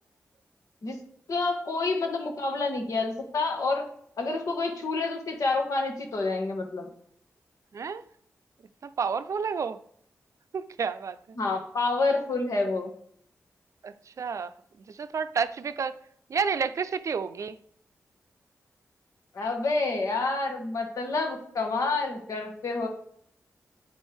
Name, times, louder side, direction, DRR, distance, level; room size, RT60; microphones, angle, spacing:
voice 1, 1.3-3.9 4.2-6.9 11.4-12.9 19.3-22.9, left 3 dB, 70° left, 3 dB, 1.6 m, -28 dB
voice 2, 8.8-9.8 10.5-11.2 13.8-14.5 14.9-16.0 16.3-17.5, right 6 dB, 65° right, 12 dB, 0.4 m, -30 dB
9.8 x 4.4 x 3.5 m, 0.67 s
cardioid pair, 45°, 6 cm